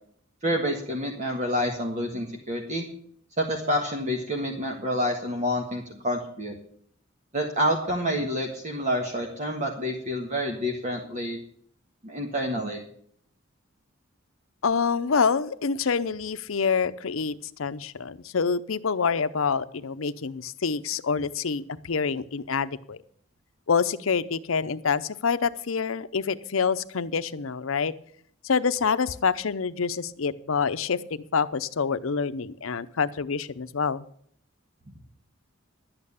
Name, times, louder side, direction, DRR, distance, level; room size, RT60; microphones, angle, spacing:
voice 1, 0.4-2.9 3.4-6.5 7.3-11.4 12.0-12.8, equal, 35° right, 1 dB, 1.6 m, -28 dB
voice 2, 14.6-23.0 23.7-27.9 28.4-31.0 31.3-34.0, left 5 dB, 80° left, 14 dB, 0.7 m, -26 dB
12.0 x 8.8 x 7.1 m, 0.63 s
head